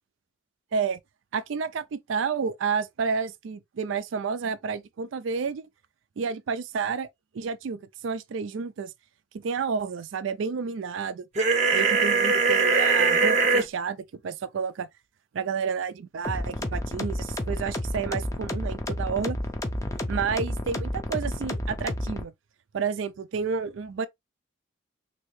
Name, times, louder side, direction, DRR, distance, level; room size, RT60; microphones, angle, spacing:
voice 1, 1.3-5.7 6.2-7.1 7.3-8.9 9.3-11.3 11.7-14.9 15.3-19.4 20.1-22.3 22.7-24.1, right 5 dB, 75° right, 0.4 m, -30 dB
sound 1, 11.4-13.6, right 4 dB, 35° right, 0.7 m, -21 dB
sound 2, 16.2-22.2, left 1 dB, 15° left, 0.4 m, -31 dB
3.1 x 2.7 x 3.1 m
head